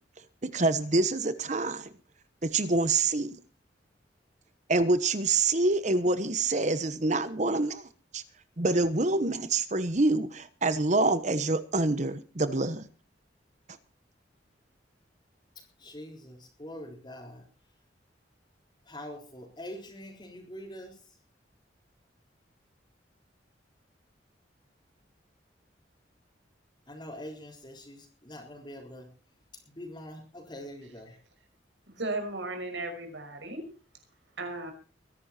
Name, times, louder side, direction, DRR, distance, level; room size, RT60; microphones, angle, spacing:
voice 1, 0.4-1.9 2.4-3.4 4.7-8.2 8.6-12.9, right 2 dB, 40° right, 1.1 m, -26 dB
voice 2, 15.8-17.4 18.9-20.9 26.9-29.1 29.7-31.2, left 1 dB, 25° left, 4.1 m, -44 dB
voice 3, 31.9-33.7 34.4-34.7, right 2 dB, 85° right, 5.8 m, -35 dB
22.5 x 11.0 x 4.3 m
head